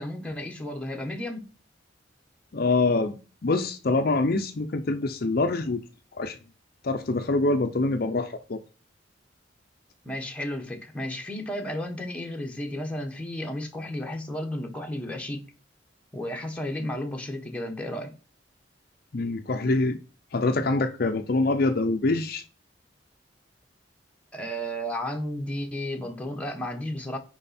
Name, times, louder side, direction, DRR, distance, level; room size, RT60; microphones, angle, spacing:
voice 1, 0.0-1.5 10.0-15.5 16.1-18.1 24.3-27.2, left 1 dB, 5° left, 1.2 m, -33 dB
voice 2, 2.5-5.8 6.1-6.4 6.8-8.6 19.1-20.0 20.3-22.4, left 2 dB, 50° left, 0.6 m, -25 dB
8.8 x 4.8 x 4.2 m
head